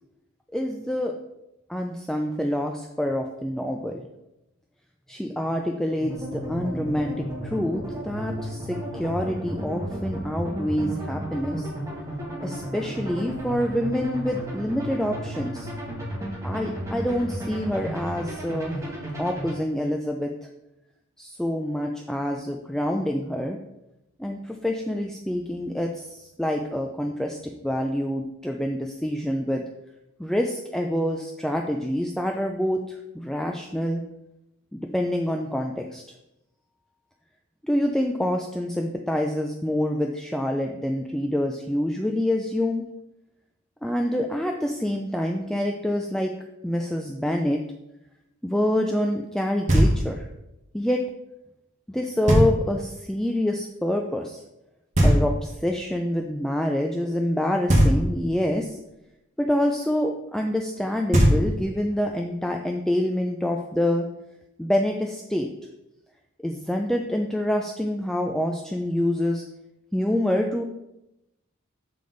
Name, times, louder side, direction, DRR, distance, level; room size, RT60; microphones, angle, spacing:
voice 1, 0.5-1.1 1.7-4.0 5.1-11.7 12.4-15.7 16.4-18.7 19.2-20.3 21.2-23.6 24.2-29.6 30.2-34.0 34.7-36.0 37.6-42.9 43.8-46.3 46.6-47.6 48.4-50.2 50.7-51.0 51.9-54.4 55.0-58.8 59.4-64.1 64.6-65.5 66.4-69.4 69.9-70.6, left 1 dB, ahead, 2 dB, 0.4 m, -26 dB
sound 1, 6.0-19.5, right 1 dB, 15° right, 1.7 m, -33 dB
Knock, 49.7-50.3 52.3-52.9 54.9-55.8 57.7-58.5 60.8-60.9 61.1-61.9, equal, 35° right, 1.5 m, -20 dB
6.7 x 5.1 x 3.9 m, 0.89 s
head